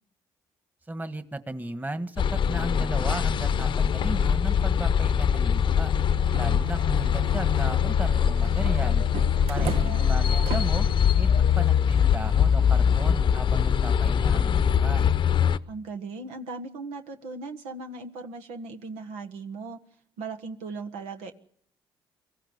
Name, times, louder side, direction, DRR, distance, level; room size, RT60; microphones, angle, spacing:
voice 1, 0.9-5.9 6.3-9.0 9.5-10.9 11.2-15.0, right 2 dB, 15° right, 10 dB, 1.5 m, -35 dB
sound 1, 2.2-15.6, left 8 dB, 55° left, 0.8 m, -23 dB
sound 2, 5.9-13.3, right 8 dB, 75° right, 0.9 m, -40 dB
voice 2, 9.6-10.1 15.7-19.8 20.2-21.3, right 3 dB, 90° right, 6 dB, 1.4 m, -38 dB
24.5 x 15.0 x 8.1 m, 0.67 s
supercardioid pair, 70°, 10 cm